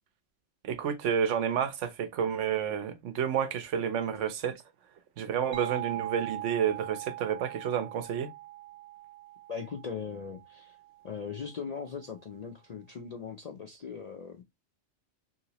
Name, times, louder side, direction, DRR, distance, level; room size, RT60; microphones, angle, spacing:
voice 1, 0.6-4.6 5.2-8.3, right 8 dB, 80° right, 0.9 m, -30 dB
sound 1, 5.5-11.0, right 15 dB, 60° right, 0.6 m, -41 dB
voice 2, 9.5-10.8 11.0-14.4, left 6 dB, 60° left, 0.4 m, -39 dB
2.9 x 2.8 x 2.8 m
omnidirectional pair, 1.2 m